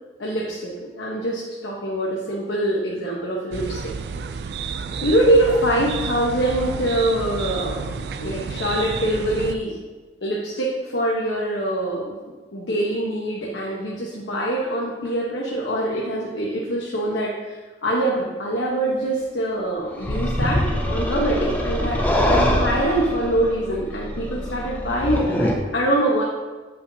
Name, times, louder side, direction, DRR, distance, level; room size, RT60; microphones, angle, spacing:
voice 1, 0.2-3.9 5.0-9.8 10.2-12.1 12.5-26.2, right 1 dB, 80° left, -3 dB, 0.9 m, -24 dB
sound 1, 3.5-9.5, right 5 dB, 60° right, 0.3 m, -30 dB
sound 2, 20.0-25.5, equal, 10° left, 0.6 m, -23 dB
8.1 x 5.5 x 2.7 m, 1.3 s
head